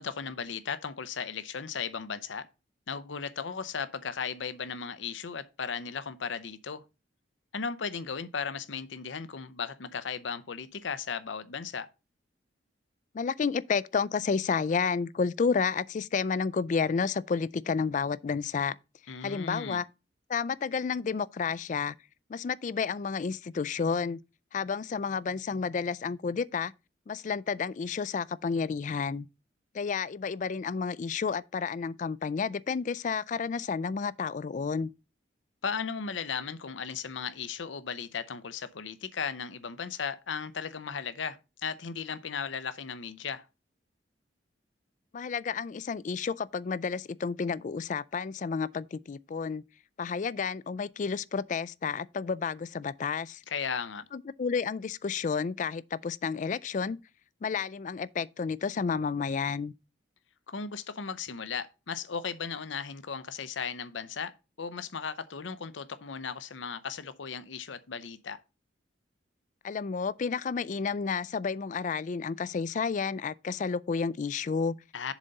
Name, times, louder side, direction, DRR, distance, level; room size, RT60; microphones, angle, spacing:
voice 1, 0.0-2.5 2.9-6.8 7.5-11.9 19.1-19.8 35.6-43.5 53.5-54.0 60.5-64.3 64.6-68.4 74.9-75.1, left 6 dB, 80° left, 0.7 m, -36 dB
voice 2, 13.1-18.8 19.2-19.9 20.3-22.0 22.3-24.2 24.5-26.7 27.1-29.3 29.7-34.9 45.1-49.6 50.0-53.4 54.1-57.0 57.4-59.7 69.6-74.8, left 5 dB, 40° left, 0.3 m, -31 dB
7.2 x 4.0 x 6.5 m
head